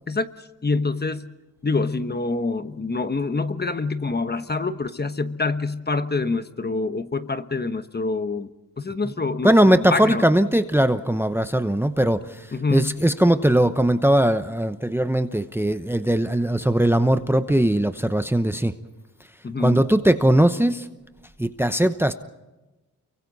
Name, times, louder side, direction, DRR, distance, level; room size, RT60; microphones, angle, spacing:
voice 1, 0.1-1.3 1.6-8.5 8.8-10.2 12.5-13.0 19.4-19.8, left 3 dB, 30° left, 10 dB, 1.2 m, -26 dB
voice 2, 9.4-18.7 19.6-20.9 21.4-22.1, right 1 dB, 5° right, 10 dB, 0.9 m, -20 dB
30.0 x 24.0 x 4.1 m, 1.1 s
cardioid pair, 80°, 34 cm